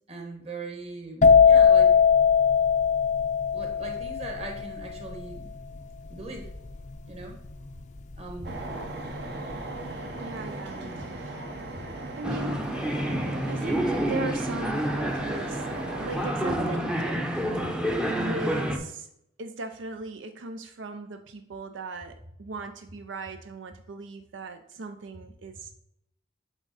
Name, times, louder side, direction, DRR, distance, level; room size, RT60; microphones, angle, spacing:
voice 1, 0.1-1.9 3.5-6.5 7.1-7.4 8.2-8.6 10.7-11.0, right 2 dB, 35° right, 2 dB, 1.4 m, -40 dB
sound 1, 1.2-8.8 9.1-9.5, left 6 dB, 40° left, 0.5 m, -21 dB
sound 2, 8.4-16.6, right 2 dB, 60° right, 1.1 m, -37 dB
voice 2, 10.2-11.4 12.2-12.7 13.5-17.5 17.8-17.9 18.2-19.1 19.4-25.7, right 3 dB, 85° right, 7 dB, 0.5 m, -38 dB
sound 3, 12.2-18.8, right 1 dB, 5° right, 0.6 m, -29 dB
8.0 x 3.6 x 4.1 m, 0.77 s
head